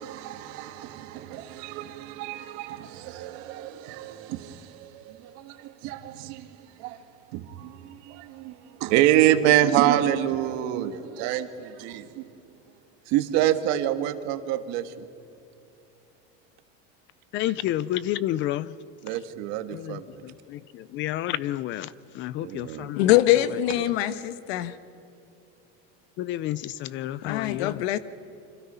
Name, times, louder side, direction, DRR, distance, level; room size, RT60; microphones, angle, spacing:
voice 1, 0.0-7.0 7.3-12.3 13.1-15.1 19.0-20.2 22.4-22.9 27.3-27.4, right 12 dB, 60° right, 1.6 m, -27 dB
voice 2, 17.3-18.8 19.1-19.2 19.7-23.9 26.2-27.8, left 13 dB, 40° left, 0.5 m, -31 dB
voice 3, 23.0-24.7 27.2-28.0, left 14 dB, 80° left, 1.3 m, -23 dB
29.0 x 26.0 x 5.6 m
cardioid pair, 155°, 31 cm